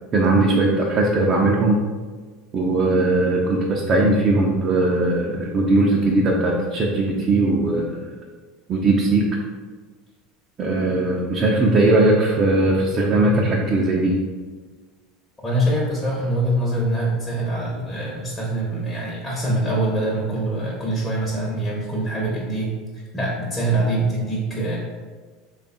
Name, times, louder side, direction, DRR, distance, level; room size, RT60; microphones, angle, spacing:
voice 1, 0.1-1.8 2.5-8.0 8.7-9.2 10.6-14.1, right 2 dB, 35° right, -2 dB, 0.5 m, -19 dB
voice 2, 15.4-24.8, right 1 dB, 15° left, -5 dB, 0.8 m, -24 dB
3.3 x 2.4 x 4.0 m, 1.4 s
hypercardioid pair, 80°, 0 cm